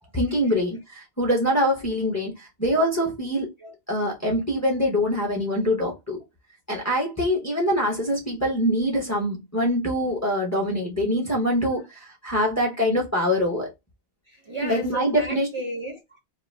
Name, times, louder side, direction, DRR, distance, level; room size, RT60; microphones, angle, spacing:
voice 1, 0.1-3.5 3.9-6.2 6.7-13.7 14.6-15.5, equal, 15° left, 0.7 m, -24 dB
voice 2, 14.2-16.2, right 1 dB, 35° right, 0.6 m, -34 dB
2.4 x 2.0 x 3.1 m
omnidirectional pair, 1.1 m